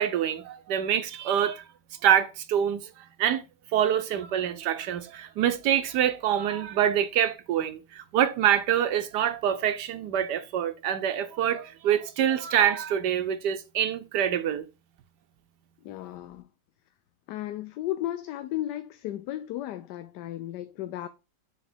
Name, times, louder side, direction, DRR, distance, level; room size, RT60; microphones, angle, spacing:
voice 1, 0.0-1.6 2.0-3.4 3.7-14.7, right 10 dB, 85° right, 1.4 m, -26 dB
voice 2, 15.8-16.5 17.3-21.1, left 14 dB, 85° left, 1.2 m, -34 dB
7.0 x 3.4 x 4.3 m
omnidirectional pair, 1.8 m